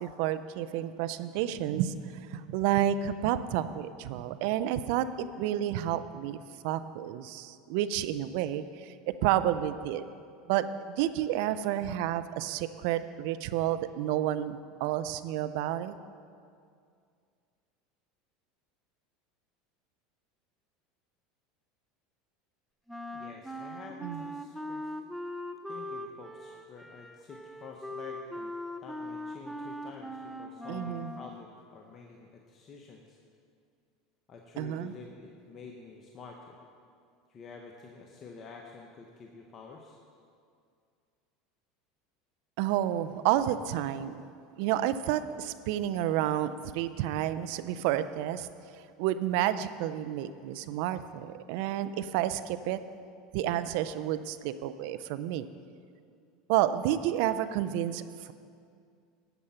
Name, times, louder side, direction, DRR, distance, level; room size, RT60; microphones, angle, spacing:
voice 1, 0.0-6.4 6.6-10.0 10.5-10.7 11.0-15.9 24.0-24.2 30.7-31.1 34.6-34.9 42.6-44.1 44.6-48.5 49.0-52.8 53.3-55.5 56.5-58.3, right 12 dB, 70° right, 13 dB, 0.6 m, -30 dB
Wind instrument woodwind instrument, 22.9-31.5, left 1 dB, ahead, 0.6 m, -40 dB
voice 2, 23.1-24.9 25.7-28.5 28.8-33.2 34.3-36.6 37.3-40.0, left 4 dB, 40° left, 0 dB, 1.2 m, -49 dB
13.0 x 8.7 x 5.7 m, 2.3 s
hypercardioid pair, 95°, 0 cm